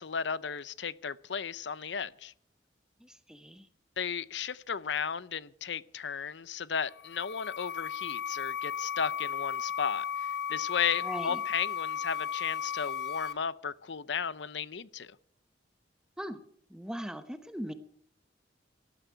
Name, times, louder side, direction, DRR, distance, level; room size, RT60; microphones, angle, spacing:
voice 1, 0.0-2.3 4.0-15.2, left 6 dB, 80° left, 0.7 m, -35 dB
voice 2, 3.0-3.7 11.0-11.4 16.2-16.4 16.7-17.7, equal, 5° right, 0.9 m, -39 dB
sound 1, 6.8-13.3, left 8 dB, 60° left, 1.3 m, -35 dB
18.5 x 13.0 x 4.7 m
head